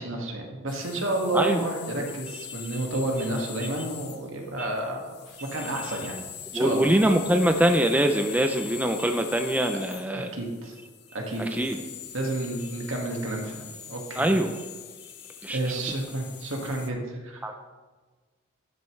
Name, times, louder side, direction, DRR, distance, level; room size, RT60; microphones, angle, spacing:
voice 1, 0.0-6.2 6.5-6.9 10.1-10.8 11.1-11.6 12.1-14.3 15.5-17.4, right 2 dB, 75° right, 1 dB, 1.9 m, -30 dB
sound 1, 0.7-16.9, left 10 dB, 50° left, 0.8 m, -43 dB
voice 2, 5.6-6.0 6.5-10.4 11.4-11.8 14.2-14.7 15.4-15.6 17.4-17.6, right 1 dB, 5° right, 5 dB, 0.4 m, -24 dB
11.5 x 9.4 x 3.2 m, 1.4 s
head